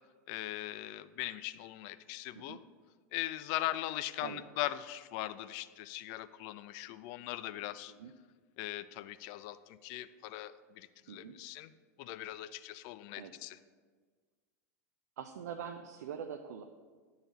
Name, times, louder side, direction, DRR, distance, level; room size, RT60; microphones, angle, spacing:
voice 1, 0.3-2.6 3.1-7.9 8.6-11.7 12.0-13.6, left 15 dB, 55° left, 14 dB, 0.4 m, -40 dB
voice 2, 11.1-11.4 13.1-13.3 15.2-16.6, right 7 dB, 80° right, 5 dB, 0.4 m, -44 dB
10.5 x 4.0 x 4.0 m, 1.5 s
hypercardioid pair, 100°, 9 cm